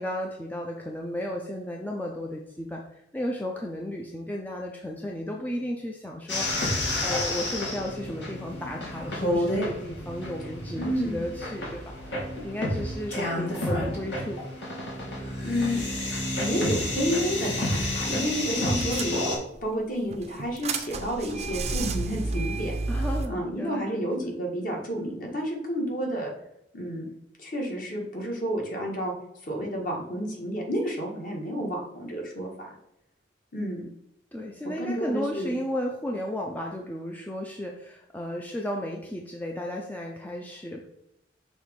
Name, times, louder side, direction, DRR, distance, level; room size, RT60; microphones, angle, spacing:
voice 1, 0.0-14.4 18.5-18.9 22.9-24.3 34.3-40.8, equal, 10° left, 0 dB, 0.5 m, -34 dB
sound 1, 6.3-19.4, left 1 dB, 75° left, 2.0 m, -30 dB
voice 2, 10.8-11.3 15.4-15.8 16.4-19.2 19.6-22.8 23.3-26.3 26.7-27.0 27.4-29.1 29.4-32.7 33.5-33.8 34.6-35.5, equal, 50° left, -1 dB, 1.6 m, -30 dB
sound 2, 18.0-18.1 18.3-18.4 18.8-19.6 20.1-23.3, right 3 dB, 35° right, 0.6 m, -31 dB
6.2 x 3.1 x 5.1 m, 0.81 s
head